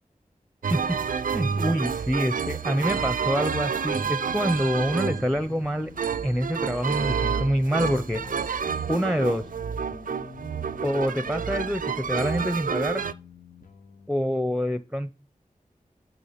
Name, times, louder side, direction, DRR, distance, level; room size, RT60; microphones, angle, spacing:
sound 1, 0.6-13.1, right 6 dB, 80° right, 0.5 m, -29 dB
voice 1, 1.3-5.9 6.2-8.2 8.9-9.4 10.8-13.0 14.1-15.1, equal, ahead, 12 dB, 0.7 m, -26 dB
sound 2, 2.7-14.1, left 5 dB, 75° left, 1.1 m, -48 dB
7.3 x 6.9 x 5.8 m, 0.30 s
cardioid pair, 40°, 14 cm